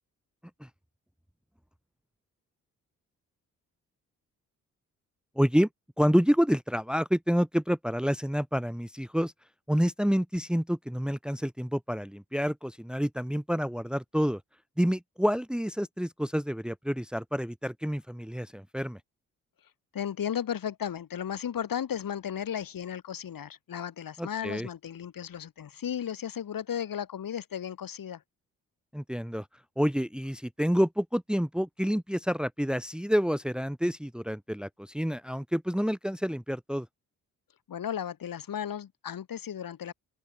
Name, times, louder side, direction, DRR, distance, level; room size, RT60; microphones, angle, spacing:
voice 1, 5.4-5.7 6.0-9.3 9.7-14.4 14.8-19.0 24.2-24.7 28.9-29.5 29.8-36.9, equal, ahead, 1.8 m, -28 dB
voice 2, 19.9-28.2 37.7-39.9, left 9 dB, 60° left, 4.6 m, -35 dB
open air
hypercardioid pair, 45°, 39 cm